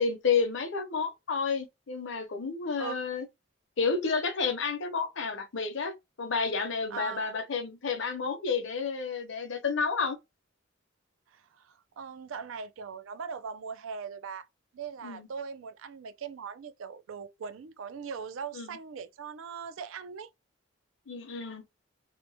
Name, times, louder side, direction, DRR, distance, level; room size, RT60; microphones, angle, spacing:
voice 1, 0.0-3.2 3.8-10.2 15.0-15.3 18.5-18.8 21.1-21.6, left 5 dB, 65° left, 0.7 m, -30 dB
voice 2, 6.9-7.3 11.3-14.5 14.7-20.3, right 6 dB, 75° right, 0.4 m, -40 dB
2.9 x 2.1 x 2.7 m
head